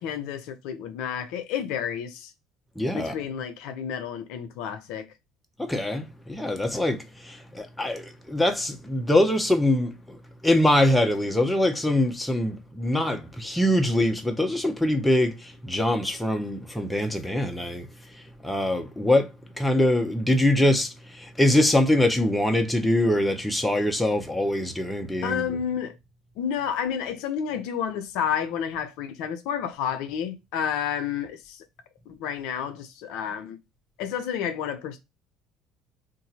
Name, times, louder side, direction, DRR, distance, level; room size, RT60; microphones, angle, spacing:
voice 1, 0.0-2.3 2.9-5.1 25.2-26.0 26.4-31.6 32.1-33.6 34.0-35.0, left 8 dB, 70° left, 0.6 m, -30 dB
voice 2, 2.8-3.2 5.6-17.9 18.1-19.3 19.6-25.4, left 1 dB, 5° left, 1.0 m, -23 dB
2.7 x 2.6 x 4.1 m
hypercardioid pair, 70°, 0 cm